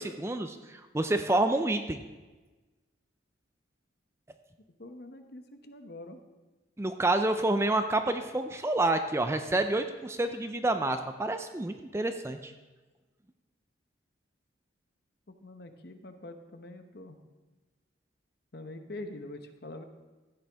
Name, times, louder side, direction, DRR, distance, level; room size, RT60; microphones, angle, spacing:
voice 1, 0.0-2.0 6.8-12.5, right 2 dB, 15° right, 8 dB, 0.4 m, -28 dB
voice 2, 4.8-6.2 15.3-17.2 18.5-19.8, left 2 dB, 50° left, 7 dB, 0.9 m, -44 dB
14.5 x 9.1 x 3.4 m, 1.2 s
head